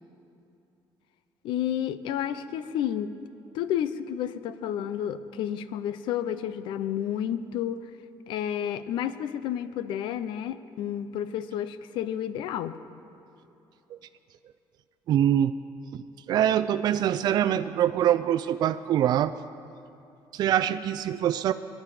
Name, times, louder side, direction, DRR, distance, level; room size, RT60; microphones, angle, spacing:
voice 1, 1.4-3.1 3.5-7.8 8.3-12.8, left 10 dB, 80° left, 13 dB, 0.7 m, -31 dB
voice 2, 15.1-15.5 15.9-16.0 16.3-19.3 20.3-21.5, right 10 dB, 55° right, 11 dB, 0.4 m, -24 dB
25.0 x 10.5 x 5.0 m, 2.8 s
cardioid pair, 135°, 8 cm